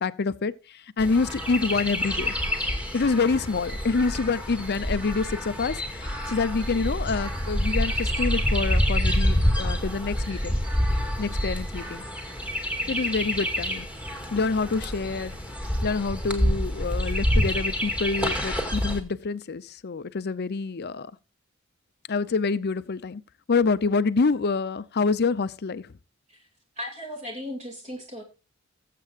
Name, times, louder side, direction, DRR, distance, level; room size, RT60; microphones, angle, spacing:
voice 1, 0.0-2.3 2.9-10.6 11.2-12.0 12.9-13.9 14.3-15.4 15.8-21.1 22.1-23.2 23.5-25.9, left 4 dB, 50° left, 0.6 m, -27 dB
Chirp tweet, 1.0-19.0, equal, 5° right, 2.1 m, -27 dB
voice 2, 26.8-28.2, left 1 dB, 35° right, 2.5 m, -36 dB
21.0 x 7.7 x 2.5 m
head